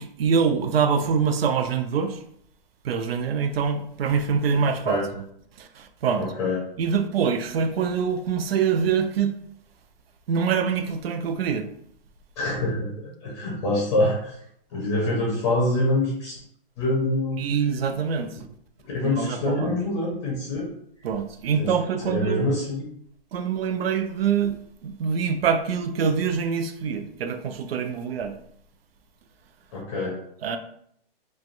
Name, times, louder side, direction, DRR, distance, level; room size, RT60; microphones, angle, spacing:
voice 1, 0.0-2.2 2.8-5.2 5.6-6.3 6.8-9.3 10.3-11.7 17.4-18.4 19.0-19.7 21.0-22.5 23.3-28.4 30.4-30.6, right 6 dB, 75° right, 0.5 m, -25 dB
voice 2, 6.1-6.6 12.4-12.9 13.2-14.4 14.7-16.4 16.8-17.4 18.8-20.7 21.6-21.7 22.0-22.9 29.7-30.2, left 2 dB, 30° left, 0.6 m, -25 dB
3.2 x 2.2 x 2.5 m
hypercardioid pair, 155°, 30 cm